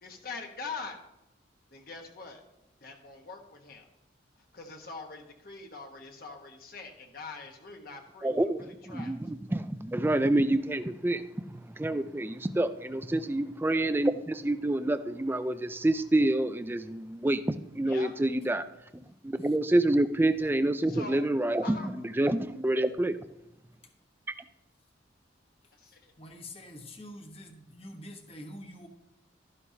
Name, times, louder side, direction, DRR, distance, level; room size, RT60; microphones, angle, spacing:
voice 1, 0.0-1.0 1.7-2.4 2.8-3.9 4.5-9.1 17.9-18.1 20.9-21.3 21.6-21.9 25.8-26.1, left 4 dB, 50° left, 2 dB, 1.3 m, -43 dB
voice 2, 8.2-11.2 11.8-18.6 19.2-23.2, right 1 dB, 10° right, 10 dB, 0.3 m, -27 dB
voice 3, 26.2-28.9, left 1 dB, 30° left, 3 dB, 1.2 m, -45 dB
12.5 x 11.0 x 2.8 m, 0.89 s
head